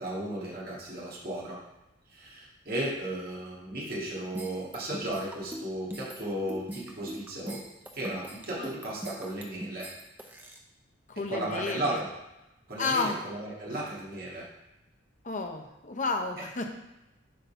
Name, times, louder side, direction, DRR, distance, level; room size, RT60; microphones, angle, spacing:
voice 1, 0.0-1.6 2.1-7.6 7.9-9.9 11.3-12.1 12.7-14.5, right 1 dB, 45° right, -5 dB, 1.7 m, -35 dB
sound 1, 4.3-10.6, right 1 dB, 10° right, 0.6 m, -41 dB
voice 2, 11.1-12.0 12.8-13.2 13.7-13.8 15.2-16.7, left 3 dB, 40° left, 4 dB, 0.8 m, -31 dB
7.7 x 3.9 x 5.6 m, 0.96 s
head